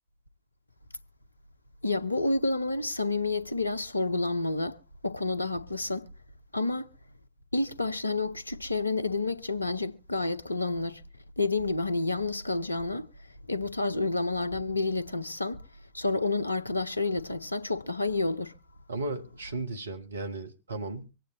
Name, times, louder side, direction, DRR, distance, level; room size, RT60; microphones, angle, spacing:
voice 1, 1.8-4.8 5.0-6.1 6.5-6.9 7.5-11.0 11.4-13.1 13.5-15.6 15.9-18.5, left 2 dB, 80° left, 0.7 m, -29 dB
voice 2, 18.9-21.1, right 2 dB, 75° right, 1.3 m, -35 dB
24.5 x 8.9 x 3.0 m
figure-of-eight pair, 90°, 0 cm